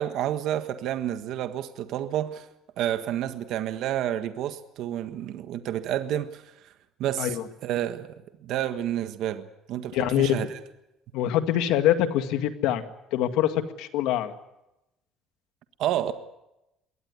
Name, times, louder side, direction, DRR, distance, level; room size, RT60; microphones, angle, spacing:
voice 1, 0.0-2.4 2.8-6.4 7.0-8.1 8.4-10.6 15.8-16.1, right 11 dB, 65° right, 1.5 m, -29 dB
voice 2, 9.9-10.4 11.1-12.8 13.1-14.3, left 11 dB, 80° left, 1.9 m, -24 dB
22.5 x 18.0 x 9.6 m
cardioid pair, 145°, 0 cm